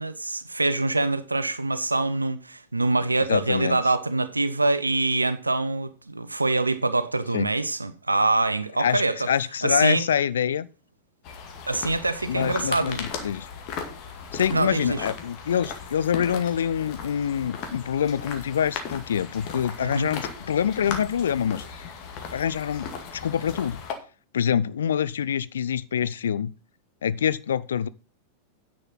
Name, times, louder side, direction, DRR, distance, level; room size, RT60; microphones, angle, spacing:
voice 1, 0.0-9.3 9.6-10.0 11.7-13.0 14.5-15.0 19.8-20.1, right 2 dB, 80° right, 0.6 m, -25 dB
voice 2, 3.3-3.8 7.3-7.5 8.8-10.7 12.3-13.5 14.3-21.6 22.3-23.8 24.3-26.5 27.0-27.9, left 8 dB, 65° left, 0.4 m, -26 dB
sound 1, 11.2-23.9, left 6 dB, 45° left, 2.1 m, -37 dB
9.8 x 6.5 x 5.6 m
figure-of-eight pair, 90°, 0 cm